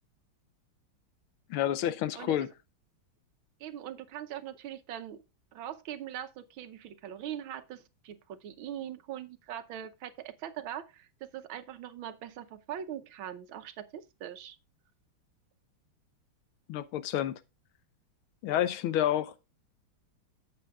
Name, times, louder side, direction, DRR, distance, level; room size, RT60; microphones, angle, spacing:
voice 1, 1.5-2.5 16.7-17.4 18.4-19.3, left 11 dB, 85° left, 1.6 m, -29 dB
voice 2, 3.6-5.2 5.5-14.6, right 10 dB, 75° right, 1.6 m, -41 dB
13.0 x 7.8 x 2.4 m
omnidirectional pair, 2.3 m